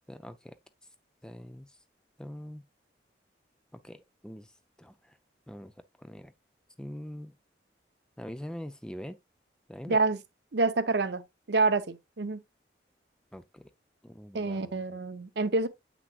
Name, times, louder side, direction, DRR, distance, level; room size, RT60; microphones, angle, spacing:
voice 1, 0.1-0.6 1.2-1.8 2.2-2.6 3.7-4.5 4.8-5.2 5.5-5.7 6.0-6.3 6.8-7.3 8.2-9.2 9.7-10.0 13.3-13.7 14.0-14.8, equal, 5° left, 0.4 m, -43 dB
voice 2, 9.9-10.2 10.5-11.2 11.5-12.4 14.3-15.7, right 3 dB, 70° right, 0.7 m, -27 dB
8.1 x 6.0 x 2.3 m
head